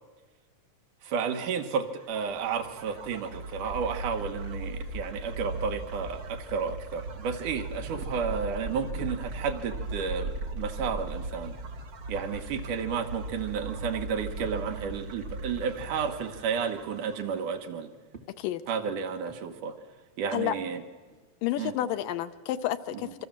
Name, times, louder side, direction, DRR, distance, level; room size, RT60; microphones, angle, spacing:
voice 1, 1.0-11.5 12.1-17.9 18.7-19.8 20.2-20.8 21.6-21.7 22.9-23.0, right 6 dB, 70° right, 5 dB, 2.8 m, -32 dB
sound 1, 1.8-17.5, right 2 dB, 40° right, 2.8 m, -38 dB
sound 2, 7.8-8.3 8.7-9.9 10.9-11.9 12.1-12.3 13.0-13.8 14.1-15.5 15.8-16.0 16.3-17.3 17.8-18.2 18.6-21.3, right 3 dB, 25° right, 1.8 m, -50 dB
voice 2, 21.4-23.3, left 12 dB, 85° left, 11 dB, 2.6 m, -30 dB
26.0 x 25.0 x 7.4 m, 1.4 s
omnidirectional pair, 3.8 m